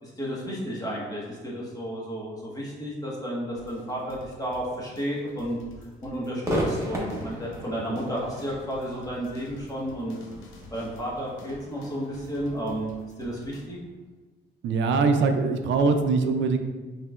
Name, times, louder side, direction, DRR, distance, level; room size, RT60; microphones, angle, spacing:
voice 1, 0.0-5.6 6.0-10.2 10.7-12.9 13.2-13.8, equal, 20° left, -5 dB, 1.4 m, -32 dB
sound 1, 3.6-13.7, left 2 dB, 80° left, 0.7 m, -49 dB
Crowd / Fireworks, 6.4-13.8, equal, 15° right, 1.2 m, -36 dB
voice 2, 14.6-16.6, right 4 dB, 70° right, 6 dB, 0.5 m, -22 dB
5.6 x 3.2 x 2.4 m, 1.3 s
cardioid pair, 90°, 20 cm